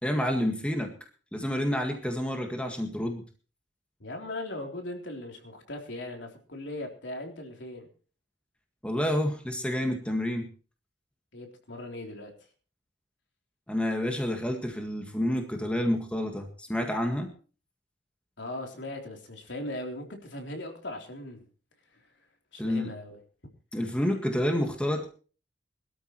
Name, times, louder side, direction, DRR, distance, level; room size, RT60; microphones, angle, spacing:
voice 1, 0.0-0.9 1.3-3.2 8.8-10.5 13.7-17.3 22.6-22.9 23.7-25.1, left 1 dB, 5° left, 3 dB, 1.8 m, -29 dB
voice 2, 4.0-7.9 11.3-12.3 18.4-21.5 21.9-22.0 22.5-23.2, left 1 dB, 80° left, 2 dB, 3.6 m, -39 dB
22.0 x 13.0 x 3.1 m, 0.38 s
head